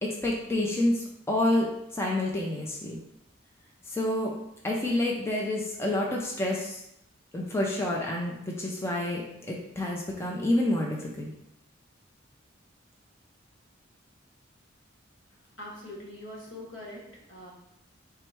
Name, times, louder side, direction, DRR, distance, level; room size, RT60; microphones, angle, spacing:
voice 1, 0.0-3.0 3.9-4.3 4.6-6.8 7.3-9.2 9.5-11.3, left 1 dB, 15° left, -3 dB, 0.5 m, -28 dB
voice 2, 15.6-17.5, left 1 dB, 75° left, -3 dB, 1.4 m, -43 dB
3.5 x 3.2 x 4.6 m, 0.80 s
head